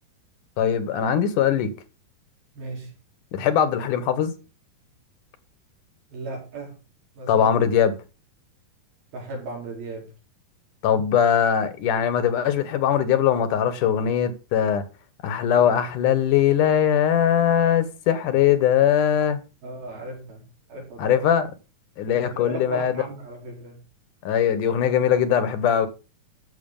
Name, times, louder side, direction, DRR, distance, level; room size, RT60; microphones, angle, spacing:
voice 1, 0.6-1.7 3.3-4.3 7.3-8.0 10.8-14.9 15.2-19.4 21.0-21.5 22.0-23.0 24.2-25.9, left 9 dB, 70° left, 2.5 m, -21 dB
voice 2, 2.6-2.9 6.1-6.7 7.1-7.5 9.1-10.1 19.6-20.4 20.7-21.2 22.1-23.8, right 2 dB, 80° right, 6.7 m, -36 dB
14.5 x 7.3 x 5.4 m
omnidirectional pair, 4.1 m